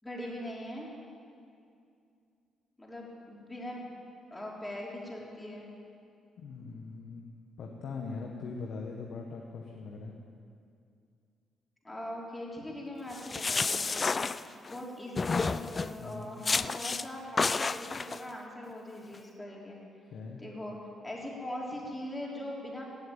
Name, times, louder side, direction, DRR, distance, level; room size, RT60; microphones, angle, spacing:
voice 1, 0.0-0.9 2.8-3.9 4.3-5.7 11.8-19.8 20.4-20.8 21.0-22.9, left 1 dB, 15° left, -3 dB, 4.0 m, -41 dB
voice 2, 6.4-7.2 7.6-10.1 16.0-16.3 20.1-20.4, left 4 dB, 65° left, 0 dB, 1.5 m, -41 dB
sound 1, 13.1-14.8 15.2-16.0 16.4-17.1 17.4-18.2, left 4 dB, 30° left, 0.4 m, -30 dB
17.0 x 7.7 x 8.9 m, 2.4 s
cardioid pair, 90°, 0 cm